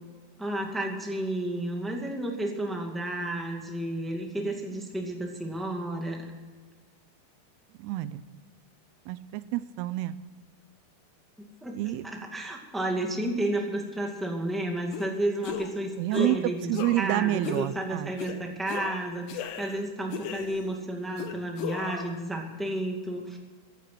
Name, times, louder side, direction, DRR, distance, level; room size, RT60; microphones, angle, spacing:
voice 1, 0.4-6.2 11.6-23.4, right 1 dB, ahead, 1 dB, 0.7 m, -32 dB
voice 2, 7.8-8.2 9.1-10.2 11.8-12.0 16.0-18.1, right 15 dB, 90° right, 13 dB, 2.7 m, -28 dB
sound 1, 14.9-15.1 15.4-15.8 16.1-16.4 16.7-17.1 17.4-17.7 18.2-18.4 18.7-19.8 20.1-20.7 21.2-22.1, left 7 dB, 90° left, 3.2 m, -36 dB
15.0 x 11.5 x 7.8 m, 1.5 s
omnidirectional pair, 4.6 m